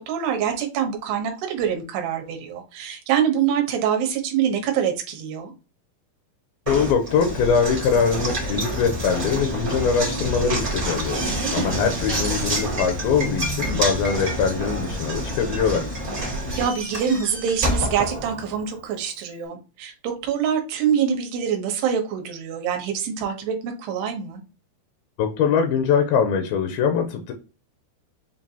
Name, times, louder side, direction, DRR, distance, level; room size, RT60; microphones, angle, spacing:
voice 1, 0.0-5.5 11.2-11.8 16.6-24.4, right 8 dB, 75° right, 2.8 m, -25 dB
voice 2, 6.7-11.2 11.5-15.9 25.2-27.3, left 6 dB, 85° left, 2.1 m, -22 dB
Knock, 6.7-18.8, right 1 dB, 50° right, 0.8 m, -28 dB
7.2 x 2.6 x 2.7 m
omnidirectional pair, 4.9 m